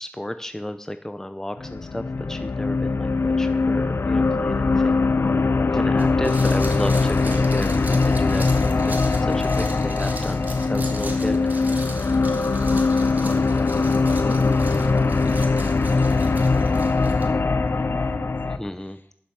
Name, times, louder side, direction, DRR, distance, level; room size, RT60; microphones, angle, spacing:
voice 1, 0.0-5.0 5.7-11.4 18.6-19.0, left 1 dB, 10° left, 10 dB, 0.6 m, -32 dB
sound 1, 1.6-18.6, left 3 dB, 70° left, 0.7 m, -21 dB
sound 2, 6.0-17.2, right 2 dB, 45° right, 2.2 m, -39 dB
voice 2, 12.3-12.8 13.6-16.5 16.9-19.1, left 2 dB, 55° left, 7 dB, 1.6 m, -40 dB
11.0 x 7.3 x 7.0 m, 0.63 s
wide cardioid pair, 55°, 4 cm